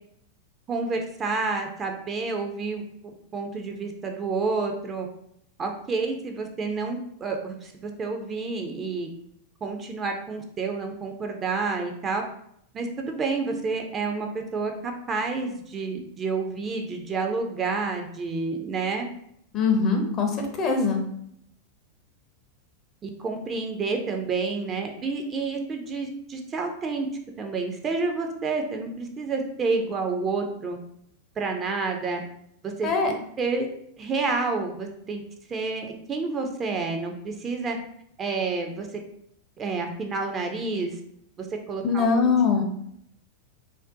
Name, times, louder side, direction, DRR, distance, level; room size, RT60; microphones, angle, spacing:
voice 1, 0.7-5.1 5.6-9.1 9.6-12.2 12.7-14.3 14.5-19.1 23.0-27.1 27.4-30.8 31.4-32.2 32.6-33.7 34.0-35.2 35.5-37.8 38.2-38.9 39.6-40.9 41.4-42.3, right 4 dB, 25° right, 3 dB, 0.4 m, -29 dB
voice 2, 19.5-20.3 20.6-21.0 32.8-33.1 41.8-42.6, left 5 dB, 30° left, 3 dB, 0.6 m, -22 dB
2.6 x 2.1 x 3.6 m, 0.71 s
figure-of-eight pair, 90°, 0 cm